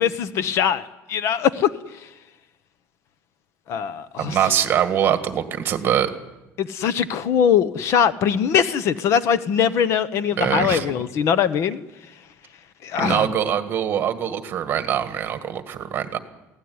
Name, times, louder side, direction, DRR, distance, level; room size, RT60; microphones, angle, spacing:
voice 1, 0.0-1.7 3.7-4.4 6.6-11.8 12.8-13.3, left 8 dB, 50° left, 15 dB, 0.9 m, -21 dB
voice 2, 4.2-6.1 10.4-10.9 13.0-16.2, right 9 dB, 35° right, 9 dB, 1.8 m, -23 dB
23.0 x 16.5 x 9.5 m, 1.0 s
cardioid pair, 160°, 6 cm